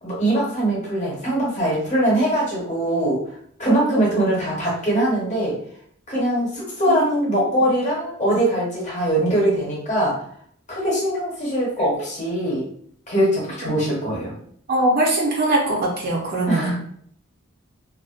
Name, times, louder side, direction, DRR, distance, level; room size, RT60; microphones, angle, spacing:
voice 1, 0.0-3.2 3.6-5.5 6.1-10.1 10.7-12.6 13.1-14.3 16.5-16.7, right 1 dB, 35° left, -5 dB, 0.9 m, -22 dB
voice 2, 6.9-7.3 13.6-13.7 14.7-16.7, right 2 dB, 45° right, -2 dB, 0.5 m, -22 dB
2.4 x 2.1 x 2.4 m, 0.63 s
head